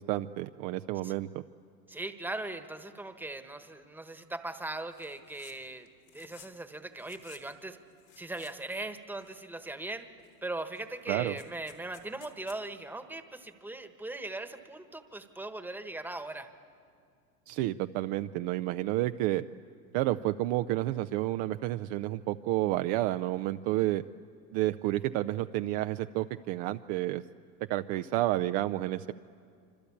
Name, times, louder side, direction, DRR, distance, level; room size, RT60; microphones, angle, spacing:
voice 1, 0.0-1.4 11.1-11.4 17.5-19.4 19.9-24.0 24.5-27.2 27.7-29.1, right 16 dB, 45° right, 10 dB, 0.6 m, -30 dB
voice 2, 1.9-5.9 6.1-7.8 8.2-10.0 10.4-16.5, right 2 dB, 5° right, 8 dB, 1.3 m, -39 dB
sound 1, 4.9-5.6 5.9-6.6 6.9-7.5 7.9-8.8 9.1-9.7 10.2-10.3 10.6-12.6, left 11 dB, 85° left, 3.4 m, -56 dB
26.0 x 25.5 x 8.6 m, 2.3 s
supercardioid pair, 120°, 49 cm